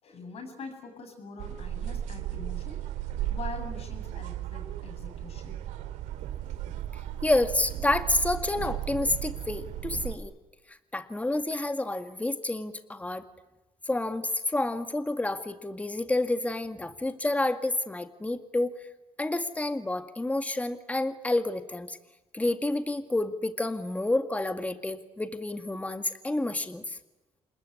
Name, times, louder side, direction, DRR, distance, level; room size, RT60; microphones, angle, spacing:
voice 1, 0.0-2.8 3.3-5.6, left 4 dB, 60° left, 6 dB, 7.8 m, -43 dB
sound 1, 1.4-10.2, right 12 dB, 85° right, 2.3 m, -35 dB
voice 2, 7.2-10.3 10.7-13.3 13.9-18.7 19.2-22.0 22.3-27.0, left 2 dB, 10° left, 9 dB, 2.0 m, -29 dB
27.5 x 21.5 x 9.6 m, 1.0 s
cardioid pair, 95°, 12 cm